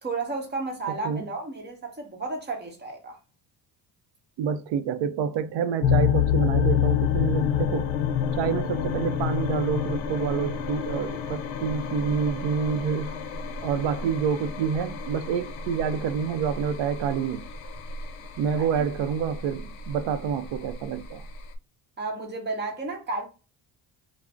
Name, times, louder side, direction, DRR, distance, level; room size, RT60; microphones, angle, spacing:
voice 1, 0.0-3.2 18.6-18.7 22.0-23.3, right 3 dB, 20° right, 0.8 m, -32 dB
voice 2, 4.4-7.9 8.4-13.2 13.6-17.5 18.4-21.2, right 7 dB, 70° right, 0.5 m, -28 dB
sound 1, 5.8-21.6, left 8 dB, 75° left, 0.5 m, -28 dB
2.4 x 2.0 x 3.2 m
cardioid pair, 120°, 46 cm